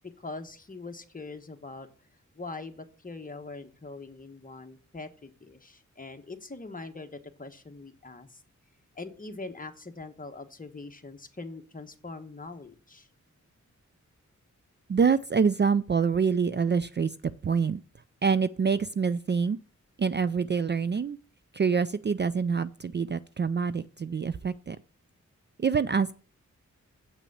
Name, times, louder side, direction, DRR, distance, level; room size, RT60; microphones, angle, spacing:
voice 1, 0.2-1.9 2.3-8.4 8.9-13.1, left 3 dB, 25° left, 6 dB, 1.2 m, -42 dB
voice 2, 14.9-17.1 17.4-17.8 18.2-19.6 20.0-21.2 21.5-24.8 25.6-26.1, right 6 dB, 35° right, 15 dB, 0.4 m, -26 dB
8.0 x 6.0 x 7.1 m, 0.40 s
wide cardioid pair, 100°, 30 cm